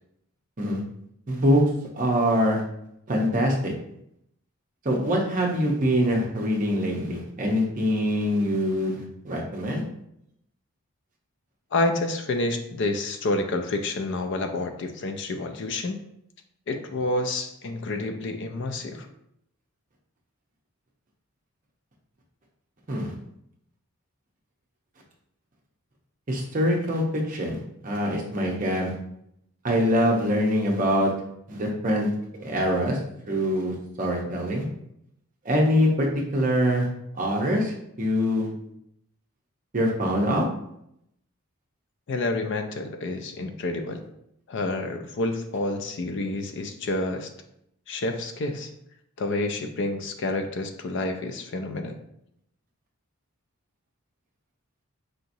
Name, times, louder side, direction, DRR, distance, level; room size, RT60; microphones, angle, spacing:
voice 1, 1.3-1.6 1.9-2.6 3.1-3.7 4.8-9.8 22.9-23.1 26.3-28.9 29.6-31.1 31.5-32.1 32.4-33.0 33.3-34.6 35.4-36.1 36.3-36.9 37.1-38.5 39.7-40.4, equal, 35° right, -1 dB, 0.7 m, -24 dB
voice 2, 11.7-16.0 16.7-19.1 42.1-44.0 44.5-47.3 47.9-48.7 49.2-52.0, left 2 dB, 55° left, 6 dB, 0.4 m, -29 dB
4.9 x 2.8 x 2.6 m, 0.76 s
head